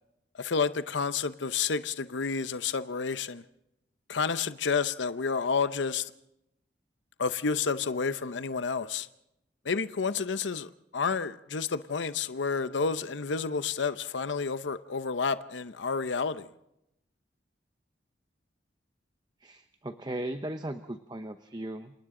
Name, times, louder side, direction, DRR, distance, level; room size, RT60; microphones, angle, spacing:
voice 1, 0.3-3.4 4.1-6.1 7.2-9.1 9.6-16.5, left 5 dB, 85° left, 0.7 m, -30 dB
voice 2, 19.4-21.9, right 1 dB, 25° right, 0.8 m, -37 dB
29.0 x 27.0 x 3.8 m
head